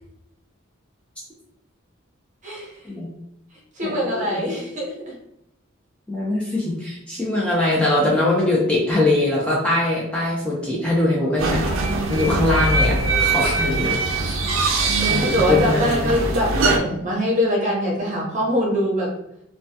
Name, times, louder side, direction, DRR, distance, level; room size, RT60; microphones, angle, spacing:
voice 1, 2.4-2.7 3.8-5.1 15.0-19.1, equal, 40° right, -3 dB, 0.8 m, -23 dB
voice 2, 3.8-4.4 6.1-11.7 12.1-14.0 14.2-14.4 15.1-16.1, left 2 dB, 5° left, -6 dB, 0.5 m, -22 dB
sound 1, 11.4-16.8, right 3 dB, 75° right, 0.4 m, -22 dB
2.2 x 2.2 x 2.6 m, 0.80 s
head